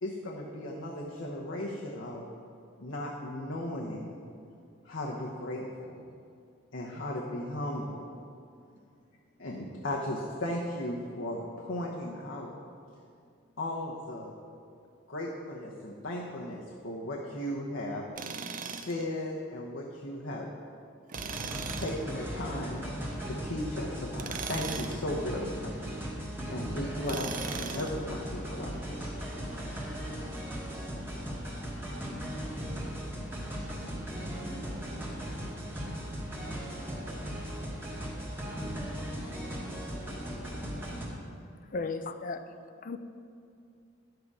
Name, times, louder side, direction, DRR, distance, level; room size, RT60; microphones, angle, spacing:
voice 1, 0.0-2.2 2.8-4.2 4.8-6.0 6.7-8.2 9.4-12.5 13.6-14.3 15.1-18.0 18.8-20.5 21.8-22.8 23.2-26.0 26.5-29.1, left 1 dB, 75° left, 1.0 m, -36 dB
Tools, 18.2-19.0 21.1-22.0 24.1-25.0 27.0-28.0, right 6 dB, 40° right, 0.5 m, -38 dB
sound 1, 21.1-41.1, equal, 10° right, 1.4 m, -38 dB
voice 2, 33.4-34.9 35.3-36.2, right 2 dB, 65° right, 0.8 m, -51 dB
voice 3, 41.7-42.4 42.8-43.0, left 3 dB, 40° left, 0.4 m, -34 dB
10.5 x 7.9 x 4.8 m
head